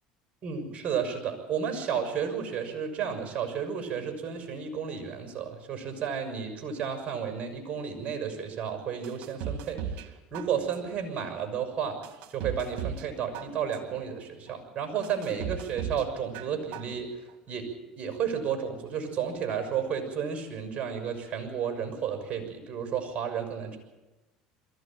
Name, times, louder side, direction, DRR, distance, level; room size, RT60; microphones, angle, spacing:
voice 1, 0.4-12.0 12.3-17.1 17.5-23.8, right 7 dB, 40° right, 5 dB, 6.5 m, -32 dB
sound 1, 9.0-10.1 10.3-11.0 11.5-11.6 12.0-13.1 13.3-14.0 14.5-14.6 15.0-16.1 16.3-17.0 17.3-17.4, right 8 dB, 65° right, 2.3 m, -36 dB
22.5 x 15.5 x 9.1 m, 1.1 s
supercardioid pair, 85°, 3 cm